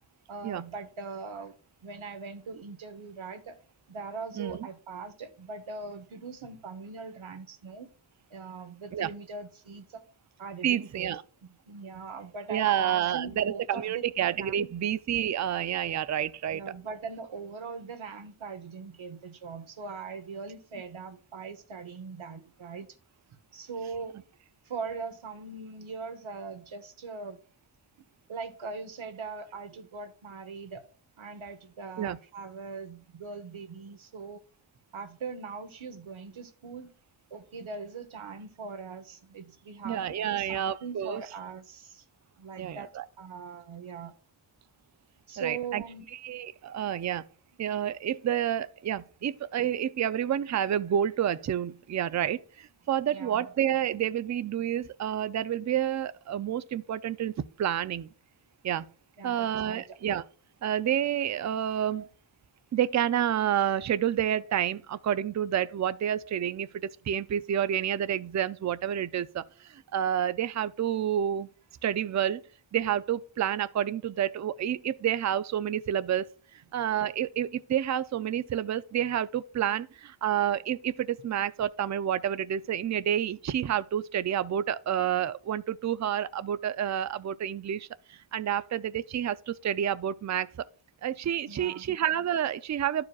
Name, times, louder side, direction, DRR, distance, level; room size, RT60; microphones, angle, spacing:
voice 1, 0.3-1.5 1.8-3.6 3.9-7.9 8.3-10.0 10.4-11.2 11.4-14.0 14.4-14.7 16.5-22.9 23.5-24.1 24.6-27.4 28.3-30.8 31.2-34.4 34.9-36.9 37.3-42.0 42.4-42.9 43.2-44.1 45.3-46.0 53.1-53.5 59.2-59.8 91.5-91.9, right 4 dB, 80° right, 1.1 m, -41 dB
voice 2, 10.6-11.2 12.5-16.6 32.0-32.2 39.8-41.2 42.6-43.0 45.4-45.8 46.2-47.2 47.6-58.1 58.6-58.9 59.2-60.2 60.6-62.1 62.7-71.5 71.8-72.4 72.7-90.6 91.0-93.1, right 10 dB, 40° right, 0.4 m, -29 dB
12.0 x 4.8 x 2.3 m
cardioid pair, 65°, 47 cm